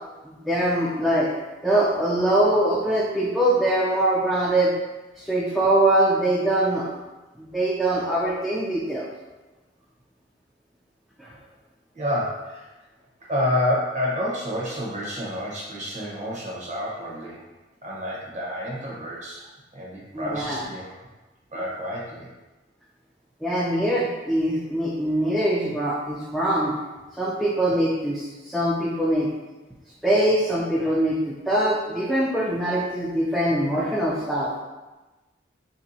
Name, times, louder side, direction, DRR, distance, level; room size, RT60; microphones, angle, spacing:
voice 1, 0.2-1.3 1.6-4.8 5.2-6.9 7.4-9.1 11.2-11.3 20.1-20.7 23.4-26.7 27.2-29.3 30.0-34.5, right 1 dB, ahead, -6 dB, 0.4 m, -23 dB
voice 2, 11.9-12.7 13.3-17.5 17.8-19.5 19.7-20.9 21.5-22.3, left 1 dB, 40° right, -4 dB, 0.9 m, -29 dB
3.2 x 2.7 x 3.9 m, 1.1 s
head